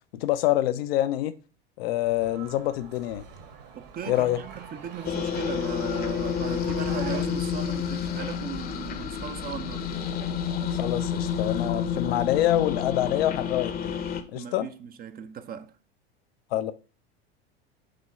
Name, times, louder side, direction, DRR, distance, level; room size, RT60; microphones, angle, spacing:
voice 1, 0.1-1.3 1.8-3.2 4.1-4.4 10.7-13.9 14.3-14.7 16.5-16.7, left 14 dB, 65° left, 0.6 m, -26 dB
sound 1, 2.0-7.2, right 6 dB, 55° right, 1.7 m, -44 dB
voice 2, 3.7-9.9 14.3-15.8, right 8 dB, 30° right, 0.6 m, -38 dB
sound 2, 5.0-14.2, left 7 dB, 30° left, 0.8 m, -29 dB
5.1 x 3.6 x 5.5 m
hypercardioid pair, 85°, 32 cm